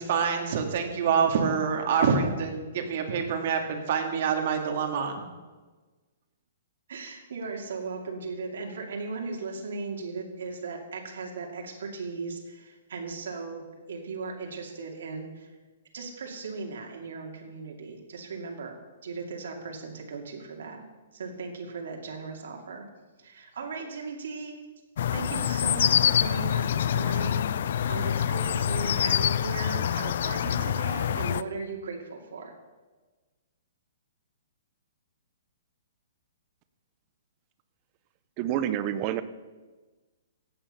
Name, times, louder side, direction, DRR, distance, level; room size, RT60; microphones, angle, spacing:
voice 1, 0.0-5.2, right 6 dB, 45° right, 4 dB, 2.1 m, -26 dB
voice 2, 6.9-15.5 15.9-18.8 19.0-20.9 21.1-22.8 23.2-24.6 25.1-32.5, right 4 dB, 70° right, 1 dB, 2.4 m, -37 dB
sound 1, 25.0-31.4, left 9 dB, 55° left, 0.4 m, -26 dB
voice 3, 38.4-39.2, right 11 dB, 25° right, 13 dB, 0.6 m, -28 dB
16.5 x 8.8 x 5.6 m, 1.3 s
hypercardioid pair, 170°, 0 cm